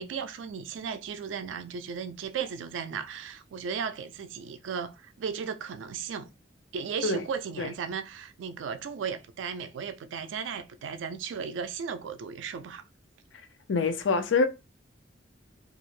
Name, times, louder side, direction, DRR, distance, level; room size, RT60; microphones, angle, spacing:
voice 1, 0.0-6.3 6.7-12.8, right 6 dB, 80° right, 0.3 m, -35 dB
voice 2, 13.7-14.5, left 4 dB, 80° left, 0.5 m, -25 dB
2.4 x 2.0 x 3.1 m
head